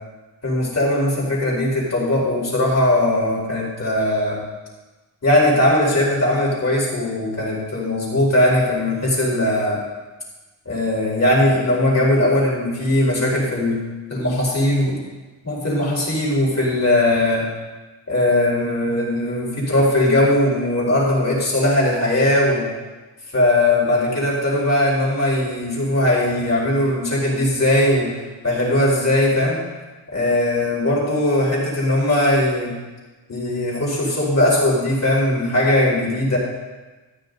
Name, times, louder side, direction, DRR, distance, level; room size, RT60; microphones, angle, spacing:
voice 1, 0.4-4.4 5.2-9.8 10.7-13.8 14.1-15.0 15.4-17.4 18.1-22.6 23.3-28.1 28.4-29.6 30.1-32.7 33.3-36.4, left 1 dB, 35° left, -4 dB, 4.3 m, -19 dB
13.0 x 9.9 x 4.0 m, 1.2 s
cardioid pair, 125°, 47 cm